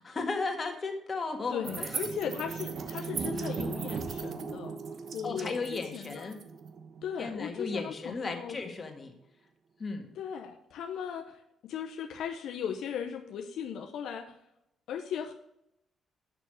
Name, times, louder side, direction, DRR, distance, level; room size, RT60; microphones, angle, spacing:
voice 1, 0.0-1.9 5.2-6.4 7.2-9.1 9.8-10.0, left 3 dB, 35° left, 4 dB, 1.7 m, -35 dB
voice 2, 1.5-4.8 5.1-5.6 5.9-6.4 7.0-8.6 10.1-14.4 14.9-15.3, left 8 dB, 80° left, 4 dB, 0.7 m, -37 dB
sound 1, 1.6-8.2, right 5 dB, 60° right, 1.1 m, -38 dB
6.7 x 6.3 x 6.4 m, 0.81 s
cardioid pair, 85°, 0 cm